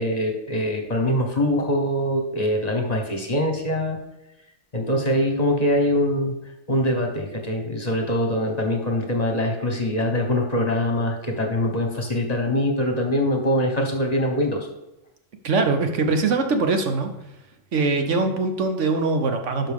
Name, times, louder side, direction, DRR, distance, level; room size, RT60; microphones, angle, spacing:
voice 1, 0.0-4.0 4.7-6.3 6.7-14.7, left 1 dB, 30° left, 3 dB, 1.2 m, -23 dB
voice 2, 15.4-17.1 17.7-19.7, right 3 dB, 65° right, 6 dB, 1.2 m, -22 dB
11.0 x 5.8 x 3.6 m, 0.91 s
omnidirectional pair, 1.4 m